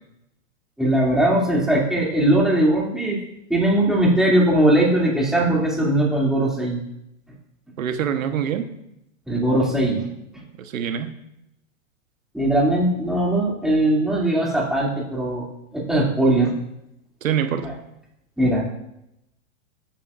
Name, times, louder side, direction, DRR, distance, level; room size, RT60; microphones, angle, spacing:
voice 1, 0.8-3.2 3.5-6.8 9.3-10.1 12.3-15.5 15.7-16.5 17.6-17.7 18.4-18.7, right 1 dB, ahead, -4 dB, 2.5 m, -20 dB
voice 2, 7.8-8.7 10.6-11.1 17.2-17.7, right 8 dB, 85° right, 7 dB, 1.2 m, -25 dB
14.5 x 8.9 x 2.5 m, 0.82 s
hypercardioid pair, 135°, 40 cm